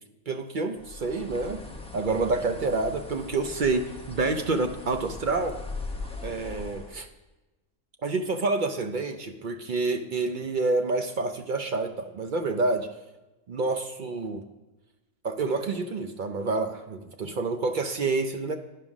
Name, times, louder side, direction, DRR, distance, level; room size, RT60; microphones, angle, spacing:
voice 1, 0.3-1.6 1.9-5.6 6.2-7.1 8.0-12.9 13.5-14.4 15.2-18.6, right 3 dB, 55° right, 6 dB, 0.5 m, -28 dB
Bird, 0.8-7.0, left 3 dB, 5° left, 0.7 m, -40 dB
10.0 x 5.5 x 6.1 m, 1.1 s
omnidirectional pair, 1.4 m